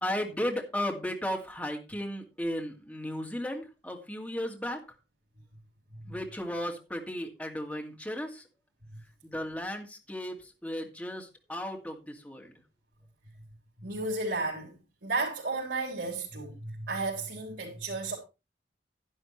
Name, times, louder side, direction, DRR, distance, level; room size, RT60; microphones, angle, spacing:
voice 1, 0.0-4.8 6.1-8.4 9.2-12.5, equal, 10° left, 2.2 m, -35 dB
voice 2, 13.8-14.7 15.0-18.2, right 3 dB, 80° right, 3.8 m, -33 dB
11.0 x 10.5 x 3.2 m
head